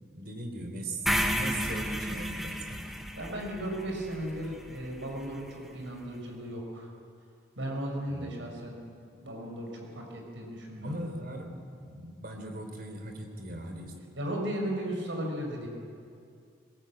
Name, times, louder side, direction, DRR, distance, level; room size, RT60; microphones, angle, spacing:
voice 1, 0.1-2.9 8.1-8.4 10.8-13.9, right 1 dB, 45° right, 4 dB, 3.6 m, -39 dB
sound 1, 1.1-5.2, equal, ahead, 1.2 m, -32 dB
voice 2, 3.1-6.9 7.6-8.8 9.1-11.0 14.2-15.7, right 1 dB, 65° right, 0 dB, 5.8 m, -36 dB
21.5 x 21.5 x 8.8 m, 2.4 s
head